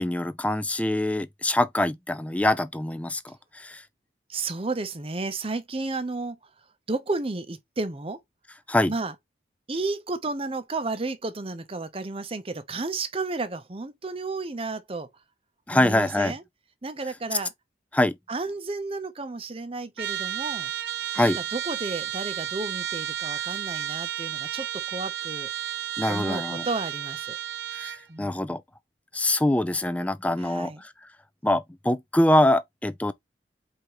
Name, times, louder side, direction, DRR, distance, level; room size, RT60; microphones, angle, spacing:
voice 1, 0.0-3.8 8.7-8.9 15.7-16.3 17.9-18.2 21.1-21.4 26.0-26.7 27.7-28.6 29.1-30.9 31.4-33.1, left 1 dB, 5° left, 0.3 m, -24 dB
voice 2, 4.3-6.4 6.9-8.2 8.9-9.1 9.7-15.1 15.7-16.4 16.8-17.5 18.3-20.7 21.2-25.5 26.1-27.4 28.1-28.5 30.4-30.8, right 3 dB, 30° right, 0.7 m, -32 dB
Trumpet, 20.0-28.0, right 11 dB, 60° right, 0.4 m, -32 dB
4.8 x 3.6 x 2.9 m
head